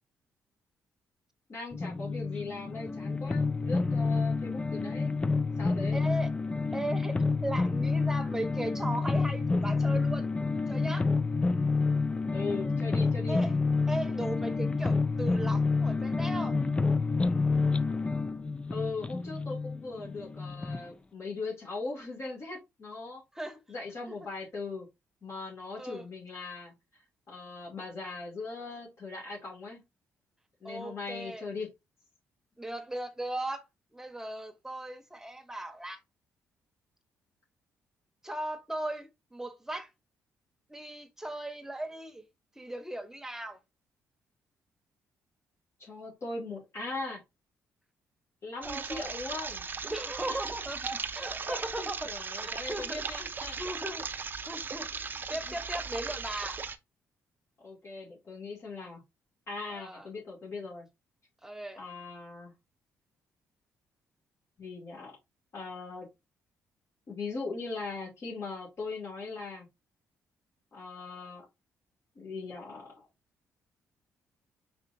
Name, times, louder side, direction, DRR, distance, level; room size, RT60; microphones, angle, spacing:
voice 1, 1.5-5.1 5.6-6.0 12.3-13.4 18.7-23.2 23.7-24.9 25.2-26.7 27.3-29.8 30.6-31.7 45.8-47.2 48.4-49.6 50.3-50.5 51.5-53.6 55.5-55.6 57.6-59.0 59.5-60.9 61.8-62.5 64.6-65.2 65.5-66.1 67.1-69.7 70.7-71.5 72.2-73.1, left 3 dB, 50° left, 2.4 m, -39 dB
sound 1, 1.7-20.8, left 4 dB, 20° left, 0.4 m, -29 dB
voice 2, 5.9-6.3 6.7-7.1 7.4-10.3 10.7-11.1 13.3-13.5 13.9-16.6 23.3-23.6 24.1-24.3 25.8-26.0 30.6-31.5 32.6-33.6 33.9-36.0 38.2-39.9 40.7-42.2 42.6-43.6 48.6-49.1 49.9-53.2 53.6-54.1 54.5-54.9 55.3-56.6 59.7-60.1 61.4-61.8, right 1 dB, 10° right, 1.1 m, -37 dB
sound 2, 48.6-56.8, right 5 dB, 35° right, 0.6 m, -37 dB
4.4 x 4.1 x 2.7 m
cardioid pair, 75°, 6 cm